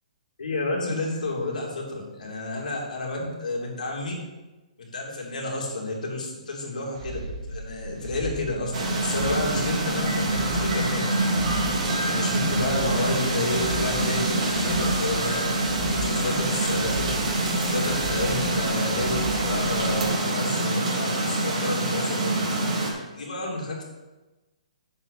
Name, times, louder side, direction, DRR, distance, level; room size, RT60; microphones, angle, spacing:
voice 1, 0.4-4.1 4.8-11.0 12.1-15.5 15.9-17.1 17.5-22.3 23.1-23.8, left 2 dB, 80° left, -1 dB, 2.8 m, -30 dB
sound 1, 6.9-20.1, right 1 dB, 45° right, 2.3 m, -37 dB
sound 2, 8.7-22.9, right 2 dB, 60° right, 2.9 m, -25 dB
6.9 x 6.0 x 7.0 m, 1.1 s
hypercardioid pair, 145°, 4 cm